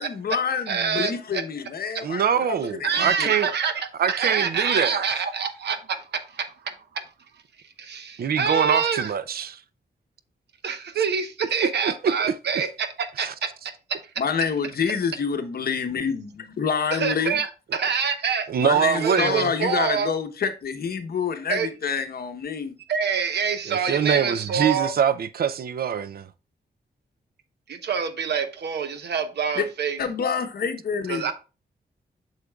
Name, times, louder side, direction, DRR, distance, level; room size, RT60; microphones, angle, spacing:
voice 1, 0.0-3.3 14.2-17.4 18.6-22.8 29.5-29.7 30.0-31.3, left 6 dB, 60° left, 0.9 m, -27 dB
voice 2, 0.7-1.4 2.8-7.0 7.8-9.1 10.6-13.5 16.9-18.5 19.0-20.1 21.5-21.7 22.9-24.9 27.7-30.0 31.1-31.3, right 6 dB, 80° right, 0.9 m, -26 dB
voice 3, 2.0-3.5 4.0-5.0 8.2-9.6 11.8-12.1 13.2-13.3 18.5-19.5 23.7-26.3, right 7 dB, 60° right, 0.4 m, -24 dB
8.2 x 6.5 x 2.3 m
wide cardioid pair, 125°, 17 cm